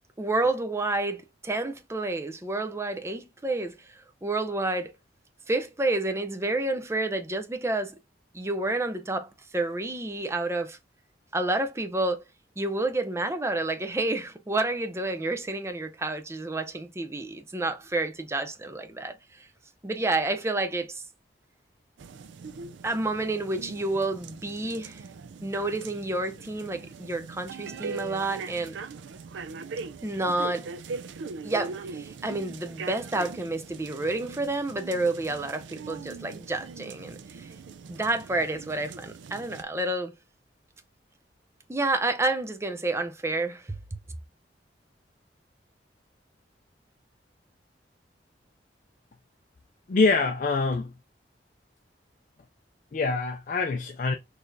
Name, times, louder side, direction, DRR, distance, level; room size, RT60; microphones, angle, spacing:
voice 1, 0.2-4.9 5.5-8.0 8.3-10.8 11.3-12.2 12.6-19.5 19.8-21.0 22.8-25.0 25.4-28.8 30.0-30.7 31.4-37.5 37.9-40.1 41.7-44.0, right 2 dB, 15° right, 0.5 m, -29 dB
sound 1, 22.0-39.6, right 4 dB, 90° right, 0.4 m, -41 dB
voice 2, 49.9-50.9 52.9-54.1, left 3 dB, 45° left, 0.4 m, -25 dB
4.1 x 3.2 x 2.6 m
head